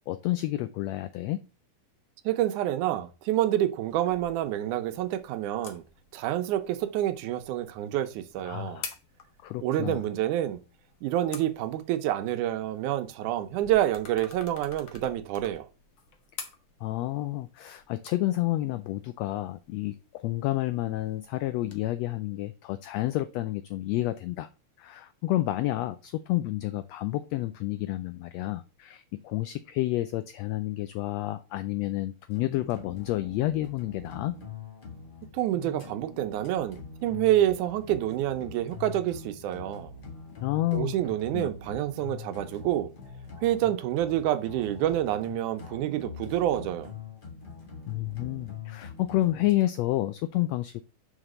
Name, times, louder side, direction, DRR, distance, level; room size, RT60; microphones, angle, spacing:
voice 1, 0.1-1.4 8.4-8.8 9.4-10.0 16.8-24.5 24.8-34.3 40.4-40.9 41.3-41.5 47.9-50.8, left 16 dB, 90° left, 1.5 m, -30 dB
voice 2, 2.3-5.8 6.1-8.8 9.6-10.6 11.0-15.7 35.3-39.9 40.7-42.9 43.4-46.9, right 13 dB, 80° right, 2.2 m, -28 dB
sound 1, 3.9-21.8, left 5 dB, 55° left, 1.3 m, -49 dB
sound 2, 32.3-49.5, left 5 dB, 30° left, 0.9 m, -44 dB
5.6 x 4.9 x 6.5 m
omnidirectional pair, 3.5 m